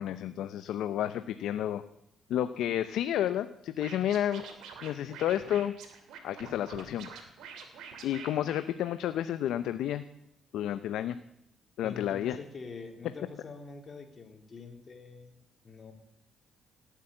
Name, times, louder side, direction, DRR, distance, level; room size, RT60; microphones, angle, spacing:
voice 1, 0.0-1.8 2.3-4.4 4.8-5.7 6.2-7.1 8.0-10.0 10.5-11.2 11.8-12.4, left 11 dB, 80° left, 11 dB, 0.6 m, -31 dB
Scratching (performance technique), 3.8-9.3, right 6 dB, 85° right, 2.8 m, -47 dB
voice 2, 11.8-15.4 15.6-15.9, left 4 dB, 40° left, 3 dB, 3.4 m, -45 dB
18.0 x 8.3 x 8.8 m, 0.78 s
cardioid pair, 90°, 0 cm